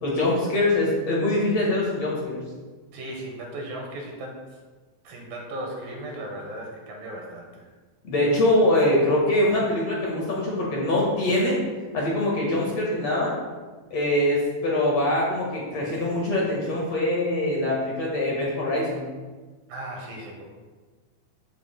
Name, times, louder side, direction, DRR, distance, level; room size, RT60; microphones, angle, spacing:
voice 1, 0.0-2.4 8.0-11.6 11.9-13.4 13.9-19.1, left 1 dB, 50° left, -4 dB, 2.3 m, -23 dB
voice 2, 2.9-4.6 5.0-7.7 19.7-20.4, right 1 dB, 70° right, 0 dB, 3.0 m, -36 dB
14.0 x 7.2 x 2.2 m, 1.3 s
omnidirectional pair, 4.3 m